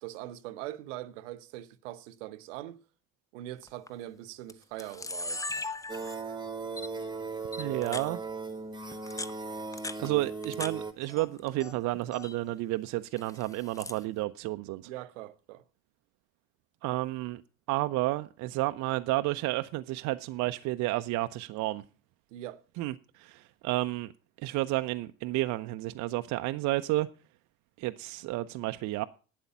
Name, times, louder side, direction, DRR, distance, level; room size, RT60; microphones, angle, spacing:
voice 1, 0.0-2.8 3.3-5.4 14.8-15.6 22.3-22.6, right 14 dB, 60° right, 1.0 m, -42 dB
Camera, 3.6-3.9 4.5-4.6 4.8-6.3 6.8-6.9 7.5-8.1 8.9-10.7 11.0-11.7 12.0-12.4 13.2-14.0, left 2 dB, 10° left, 0.7 m, -39 dB
sound 1, 5.9-10.9, right 4 dB, 10° right, 1.2 m, -37 dB
voice 2, 7.6-8.2 10.0-14.9 16.8-17.4 17.7-21.8 22.8-24.1 24.4-27.1 27.8-29.0, right 18 dB, 40° right, 0.6 m, -31 dB
12.0 x 8.7 x 5.6 m
figure-of-eight pair, 60°, 42 cm